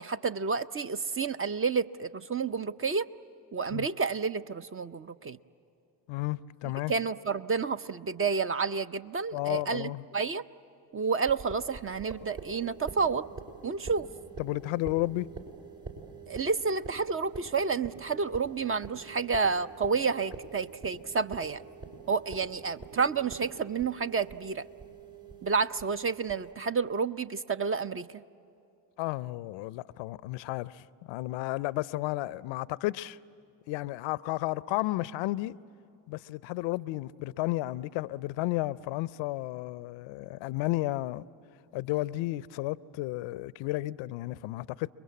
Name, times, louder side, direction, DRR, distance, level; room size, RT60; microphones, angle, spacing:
voice 1, 0.0-3.1 3.5-5.4 6.9-10.4 10.9-13.3 13.6-14.1 16.3-21.6 22.1-24.7 25.4-28.2, right 5 dB, 25° right, 0.6 m, -30 dB
voice 2, 6.1-6.9 9.3-10.0 14.4-15.3 29.0-33.2 33.7-35.6 36.1-41.2 41.7-44.9, left 18 dB, 65° left, 0.6 m, -32 dB
sound 1, 11.2-26.5, right 4 dB, 60° right, 6.3 m, -46 dB
30.0 x 22.0 x 8.5 m
hypercardioid pair, 45°, 49 cm